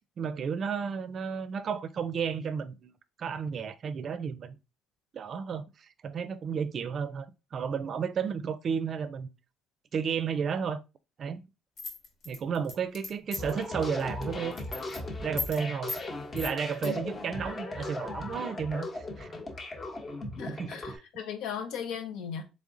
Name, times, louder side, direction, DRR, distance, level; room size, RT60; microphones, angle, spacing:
voice 1, 0.0-2.9 3.2-4.6 5.1-9.3 9.9-10.8 11.2-11.4 12.2-14.6 15.2-15.9 16.3-19.3 20.5-21.0, right 6 dB, 50° right, 0.4 m, -33 dB
sound 1, 11.8-13.6 14.0-14.2 14.5-15.0 15.4-15.6 15.9-16.0 16.4-16.9, left 3 dB, 60° left, 1.3 m, -37 dB
sound 2, 13.4-21.0, left 2 dB, 35° left, 1.0 m, -38 dB
voice 2, 20.4-22.4, left 8 dB, 80° left, 0.7 m, -37 dB
3.6 x 3.4 x 2.6 m
cardioid pair, 95°, 0 cm